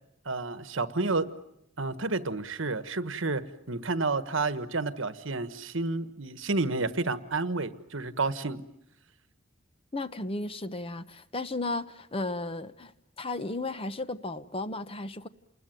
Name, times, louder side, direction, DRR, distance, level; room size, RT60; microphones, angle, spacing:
voice 1, 0.2-1.3 1.8-8.6, right 3 dB, 70° right, 1.4 m, -30 dB
voice 2, 9.9-15.3, left 2 dB, 25° left, 1.0 m, -34 dB
29.5 x 21.0 x 9.2 m
head